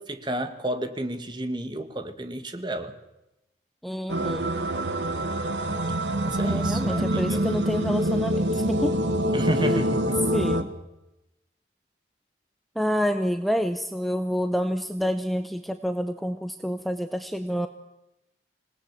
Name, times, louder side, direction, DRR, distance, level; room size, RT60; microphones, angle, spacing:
voice 1, 0.0-3.0 6.2-7.5 9.3-10.2, right 1 dB, 25° right, 9 dB, 1.9 m, -31 dB
voice 2, 3.8-4.5 6.4-9.0 9.6-9.8 10.3-10.7 12.8-17.7, equal, ahead, 8 dB, 0.9 m, -28 dB
sound 1, 4.1-10.6, right 1 dB, 85° right, 1.8 m, -25 dB
27.0 x 19.0 x 7.6 m, 0.93 s
head